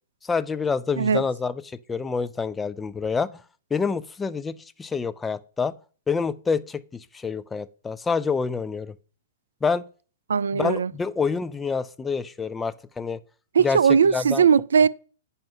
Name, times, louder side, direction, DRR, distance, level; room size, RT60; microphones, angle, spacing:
voice 1, 0.2-3.4 3.7-5.7 6.1-8.9 9.6-9.8 10.5-13.2 13.6-13.8 14.1-14.4, left 5 dB, 15° left, 0.5 m, -27 dB
voice 2, 10.3-10.9 13.5-14.9, right 6 dB, 75° right, 0.4 m, -19 dB
9.1 x 5.7 x 5.5 m
hypercardioid pair, 110°, 0 cm